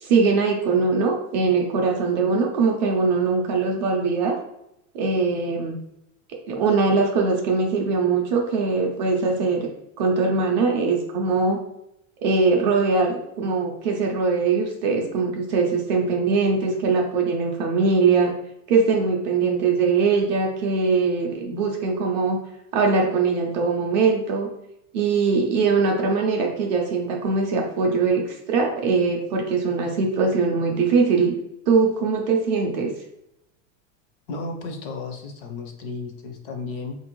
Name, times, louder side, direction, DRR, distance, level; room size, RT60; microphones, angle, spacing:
voice 1, 0.0-4.4 4.9-5.8 6.5-9.7 10.0-11.6 12.2-18.3 18.7-22.4 22.7-24.5 24.9-31.3 31.7-32.9, right 4 dB, 35° right, 0 dB, 0.4 m, -21 dB
voice 2, 34.3-37.0, left 3 dB, 45° left, 4 dB, 0.5 m, -33 dB
3.9 x 2.6 x 2.9 m, 0.81 s
supercardioid pair, 180°, 40 cm